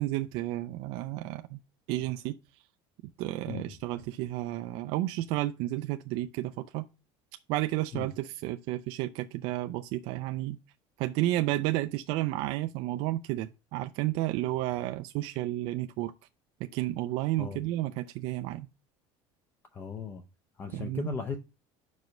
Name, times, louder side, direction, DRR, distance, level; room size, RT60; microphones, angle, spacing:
voice 1, 0.0-1.6 1.9-2.3 3.2-6.8 7.5-10.6 11.0-16.1 16.6-18.7 20.7-21.1, right 16 dB, 55° right, 0.4 m, -32 dB
voice 2, 19.7-20.2 20.6-21.4, left 5 dB, 20° left, 0.5 m, -36 dB
5.3 x 4.8 x 5.1 m
cardioid pair, 180°, 11 cm